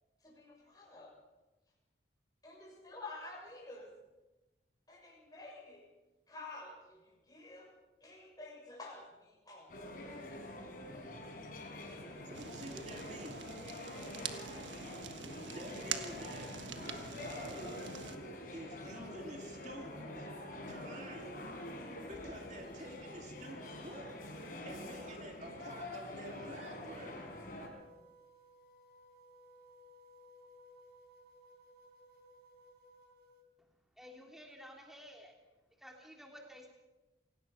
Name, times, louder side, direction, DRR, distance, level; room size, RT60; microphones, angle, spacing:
voice 1, 0.2-1.1 2.4-3.9 4.9-5.9 6.3-7.7 8.0-9.7 13.8-14.0, left 2 dB, 20° left, -2 dB, 7.0 m, -50 dB
sound 1, 9.7-27.7, left 1 dB, 50° left, 4.8 m, -46 dB
voice 2, 11.8-13.4 15.5-16.5 16.9-18.0 18.5-20.3 20.7-21.4 22.1-24.2 24.6-27.3, right 1 dB, 40° right, 2 dB, 2.5 m, -49 dB
Fire, 12.3-18.2, right 7 dB, 90° right, 1.4 m, -45 dB
sound 2, 26.3-33.4, equal, 55° right, 4.2 m, -60 dB
voice 3, 34.0-35.3 35.8-36.7, equal, ahead, 0 dB, 3.3 m, -53 dB
27.5 x 18.0 x 5.9 m, 1.1 s
head